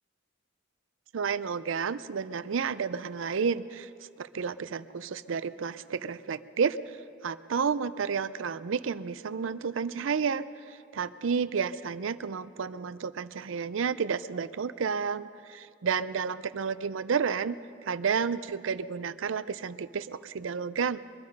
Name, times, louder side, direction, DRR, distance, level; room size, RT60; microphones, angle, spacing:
voice 1, 1.1-17.6 17.8-21.0, right 6 dB, 70° right, 15 dB, 0.5 m, -31 dB
22.0 x 11.5 x 5.3 m, 2.8 s
head